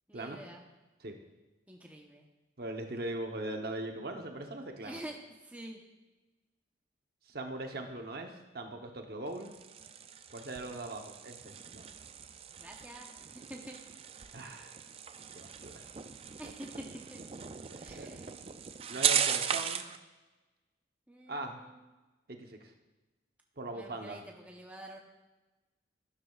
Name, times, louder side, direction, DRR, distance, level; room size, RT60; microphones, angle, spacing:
voice 1, 0.1-0.6 1.7-2.2 4.8-5.8 12.6-13.8 16.4-17.2 17.8-18.3 21.1-21.8 23.7-25.0, right 1 dB, 10° right, 0 dB, 0.9 m, -47 dB
voice 2, 2.6-5.0 7.3-9.5 10.3-11.8 14.3-14.8 15.3-15.9 17.7-18.1 18.9-19.9 21.3-21.6 22.3-22.7 23.6-24.2, right 2 dB, 55° right, 3 dB, 0.9 m, -40 dB
sound 1, 9.3-20.0, right 8 dB, 30° right, 0.4 m, -37 dB
11.5 x 11.5 x 2.4 m, 1.1 s
head